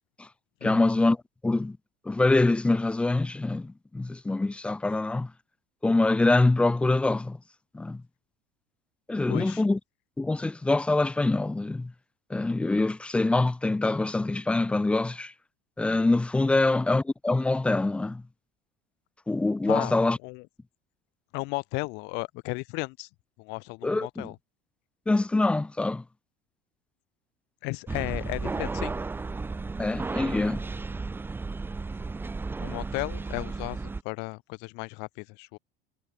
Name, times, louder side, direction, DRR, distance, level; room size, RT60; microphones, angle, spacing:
voice 1, 0.6-1.2 1.4-1.8 2.1-5.3 5.8-7.4 7.7-8.0 9.1-9.8 10.2-11.9 12.3-15.3 15.8-18.2 19.3-20.2 23.8-24.3 25.1-26.0 29.8-30.6, left 2 dB, 5° left, 0.5 m, -24 dB
voice 2, 9.3-9.6 19.7-20.4 21.3-23.1 23.4-24.4 27.6-28.9 32.6-35.6, left 28 dB, 55° left, 1.1 m, -35 dB
sound 1, 27.9-34.0, right 3 dB, 10° right, 1.5 m, -33 dB
cardioid pair, 155°, 21 cm